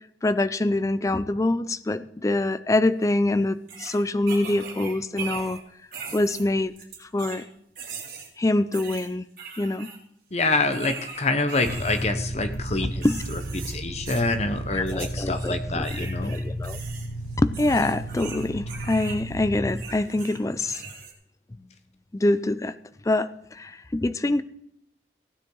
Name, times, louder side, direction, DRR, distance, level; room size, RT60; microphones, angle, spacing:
voice 1, 0.2-5.6 6.1-6.7 7.0-7.4 8.4-9.2 9.6-9.9 12.8-13.2 14.8-15.8 16.2-16.8 17.4-20.8 22.1-22.7 23.0-24.4, left 2 dB, 20° left, 14 dB, 0.4 m, -25 dB
sound 1, 3.0-3.1 3.7-5.6 5.9-7.4 7.7-8.3 8.7-10.0 10.7-12.1 12.5-13.7 14.0-14.3 14.9-15.6 15.8-19.2 19.7-21.1, right 6 dB, 50° right, 2.6 m, -40 dB
voice 2, 10.3-13.1 13.3-13.4 13.6-16.4, left 3 dB, 40° left, 8 dB, 0.9 m, -26 dB
sound 2, 11.6-19.7, equal, 70° left, 3.5 m, -33 dB
16.0 x 9.5 x 3.9 m, 0.75 s
head